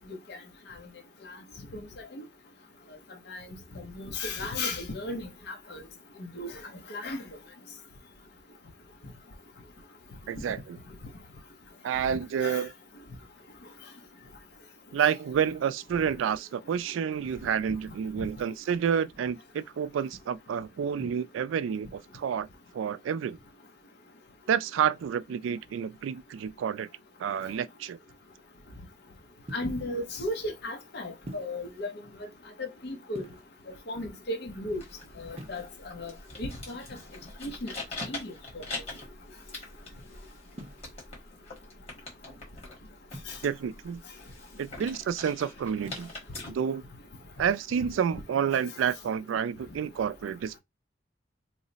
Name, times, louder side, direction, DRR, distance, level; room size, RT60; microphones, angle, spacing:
voice 1, 4.0-5.8 6.2-6.5 6.9-7.2 12.4-12.6 15.0-15.1 29.5-31.9 32.6-33.3 33.9-34.8 35.2-36.1 36.4-36.8 37.4-37.7 38.1-38.6 43.3-43.4, left 2 dB, 60° left, 0.8 m, -35 dB
voice 2, 10.3-10.8 11.8-12.7 14.9-22.5 22.7-23.4 24.5-26.9 27.2-28.0 43.4-44.0 44.6-46.1 46.5-46.8 47.4-50.6, right 8 dB, 85° right, 0.3 m, -29 dB
sound 1, 29.5-29.9 31.3-31.7 33.1-33.7 35.4-36.1 38.0-38.5 40.5-40.8 43.1-43.7 45.8-46.2, right 1 dB, 30° right, 0.6 m, -45 dB
sound 2, 34.7-46.5, left 3 dB, 35° left, 1.5 m, -44 dB
3.1 x 2.0 x 3.9 m
head